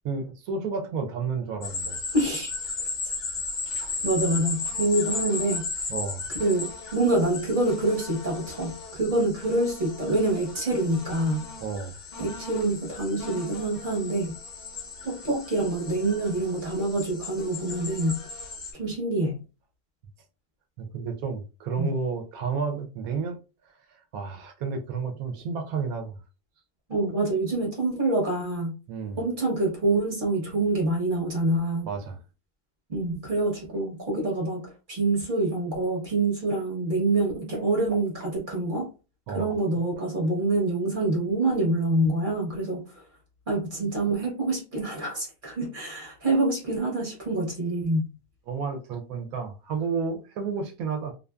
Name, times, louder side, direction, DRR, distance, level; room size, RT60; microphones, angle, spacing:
voice 1, 0.0-2.0 3.8-3.9 5.9-6.3 11.6-12.0 20.8-23.4 23.7-26.2 28.9-29.2 31.8-32.2 39.3-39.5 48.5-51.1, right 5 dB, 70° right, 1.0 m, -31 dB
sound 1, 1.6-18.7, left 4 dB, 60° left, 0.5 m, -36 dB
voice 2, 2.1-2.5 4.0-5.6 6.4-11.5 12.2-14.3 15.0-18.2 18.7-19.4 21.8-21.9 26.9-28.7 29.2-31.9 32.9-38.9 39.3-42.9 43.5-48.1, right 2 dB, 40° right, 0.9 m, -26 dB
2.6 x 2.5 x 2.2 m
omnidirectional pair, 1.7 m